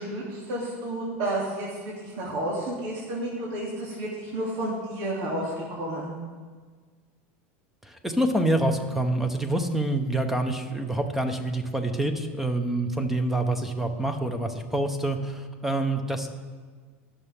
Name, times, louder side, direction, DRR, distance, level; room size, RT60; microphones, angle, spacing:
voice 1, 0.0-6.1, right 1 dB, 65° right, -5 dB, 3.1 m, -31 dB
voice 2, 7.8-16.3, right 1 dB, 5° right, 6 dB, 1.3 m, -26 dB
21.5 x 7.2 x 3.8 m, 1.5 s
supercardioid pair, 115°, 7 cm